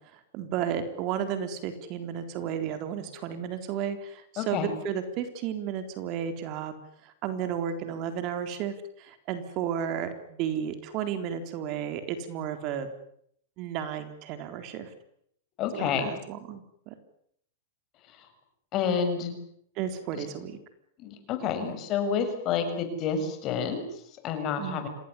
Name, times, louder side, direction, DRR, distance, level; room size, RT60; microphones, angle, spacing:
voice 1, 0.3-6.7 7.0-12.9 13.6-14.9 15.8-16.9 19.8-20.6 21.6-21.8 24.6-24.8, right 8 dB, 45° right, 9 dB, 3.9 m, -33 dB
voice 2, 4.4-4.7 15.6-16.1 18.1-18.3 18.7-19.3 20.1-20.2 21.0-24.9, left 6 dB, 35° left, 7 dB, 7.2 m, -29 dB
27.0 x 19.0 x 9.9 m, 0.70 s
hypercardioid pair, 135°, 0 cm